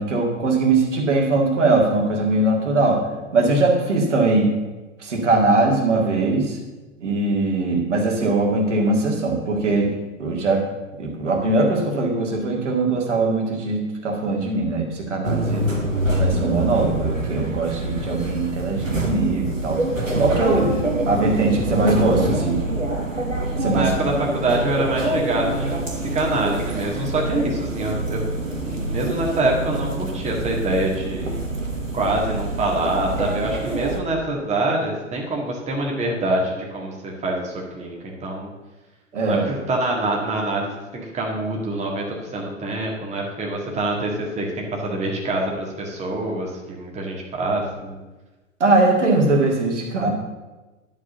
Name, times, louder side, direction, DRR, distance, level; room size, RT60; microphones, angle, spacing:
voice 1, 0.0-3.0 3.3-4.5 5.0-6.6 7.0-9.9 10.2-10.6 11.0-15.6 16.2-19.8 20.2-22.6 23.6-23.9 39.1-39.5 48.6-50.1, right 2 dB, 65° right, 1 dB, 2.1 m, -21 dB
sound 1, 15.2-34.0, right 1 dB, 85° right, 1.5 m, -25 dB
voice 2, 15.5-15.9 20.5-20.8 23.7-28.2 28.6-31.4 31.9-38.5 39.2-48.0, right 2 dB, 15° right, -1 dB, 1.9 m, -25 dB
11.0 x 4.9 x 6.8 m, 1.1 s
figure-of-eight pair, 100°, 38 cm